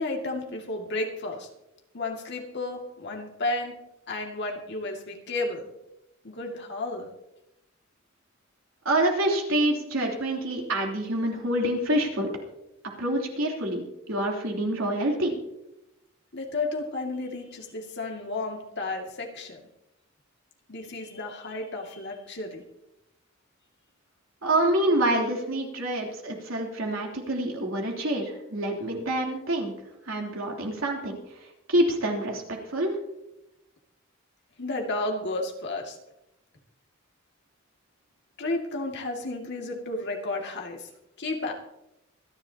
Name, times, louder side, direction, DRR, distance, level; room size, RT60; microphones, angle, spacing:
voice 1, 0.0-1.5 1.9-3.7 4.1-5.7 6.2-7.1 16.3-19.6 20.7-22.6 34.6-36.0 38.4-40.9 41.2-41.5, left 2 dB, 60° left, 1 dB, 2.3 m, -32 dB
voice 2, 8.8-12.3 13.0-15.4 24.4-29.7 30.1-31.2 31.7-32.9, right 1 dB, 85° right, 0 dB, 3.3 m, -26 dB
25.5 x 10.5 x 2.9 m, 0.88 s
head